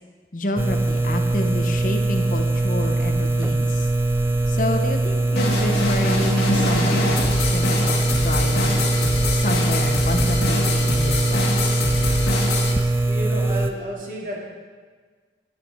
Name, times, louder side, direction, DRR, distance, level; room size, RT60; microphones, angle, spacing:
voice 1, 0.3-3.9 4.5-8.8 9.3-11.8, left 1 dB, 45° left, 5 dB, 1.0 m, -28 dB
sound 1, 0.6-13.7, right 2 dB, 15° right, 0.3 m, -22 dB
sound 2, 5.4-12.7, left 2 dB, 70° left, 1.8 m, -25 dB
voice 2, 13.0-14.4, equal, 50° right, -4 dB, 2.5 m, -31 dB
11.5 x 10.5 x 3.6 m, 1.5 s
head